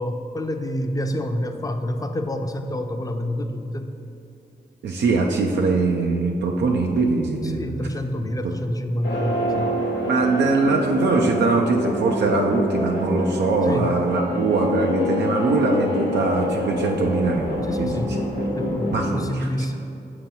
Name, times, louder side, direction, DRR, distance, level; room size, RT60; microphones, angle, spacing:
voice 1, 0.0-3.9 7.4-9.7 13.7-13.9 17.7-18.2 18.5-19.8, left 1 dB, 20° left, 6 dB, 0.5 m, -28 dB
voice 2, 4.8-7.9 10.0-18.2 18.9-19.8, right 3 dB, 85° right, 1 dB, 0.4 m, -22 dB
sound 1, 9.0-19.0, left 1 dB, 80° left, 0.9 m, -26 dB
6.7 x 2.9 x 5.4 m, 2.6 s
cardioid pair, 45°, 18 cm